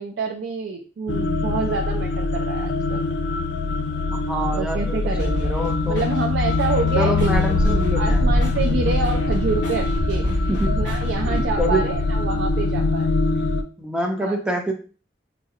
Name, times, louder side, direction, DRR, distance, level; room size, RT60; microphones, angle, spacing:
voice 1, 0.0-3.0 4.5-5.5 5.9-10.4 10.7-13.2 14.2-14.4, right 4 dB, 75° right, 1 dB, 0.3 m, -27 dB
sound 1, 1.1-13.6, left 4 dB, 70° left, 0.3 m, -24 dB
voice 2, 4.1-6.1 7.0-8.2 10.5-10.8 11.2-11.9 13.8-14.7, right 1 dB, 5° right, 2 dB, 0.4 m, -26 dB
sound 2, 5.1-11.4, equal, 20° left, 1.6 m, -29 dB
sound 3, 7.1-12.5, equal, 60° right, 0.9 m, -26 dB
3.5 x 2.0 x 2.7 m, 0.38 s
head